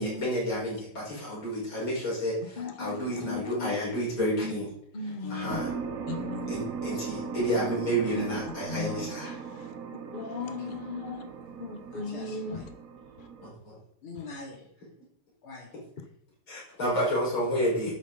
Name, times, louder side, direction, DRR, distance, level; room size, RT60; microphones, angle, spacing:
voice 1, 0.0-4.7 5.0-5.7 6.5-9.4 13.4-13.8 16.5-17.9, equal, 70° left, 6.1 m, -30 dB
voice 2, 2.6-3.7 4.4-4.5 4.9-5.6 6.1-6.5 8.1-8.3 8.7-9.1 10.1-11.2 11.6-12.6, left 4 dB, 35° left, 0.9 m, -36 dB
sound 1, 5.5-13.5, right 6 dB, 50° right, 1.2 m, -38 dB
voice 3, 10.4-10.8 11.9-12.7 14.0-14.7 15.4-15.7, left 3 dB, 90° left, 3.5 m, -43 dB
11.5 x 9.1 x 4.1 m
omnidirectional pair, 2.3 m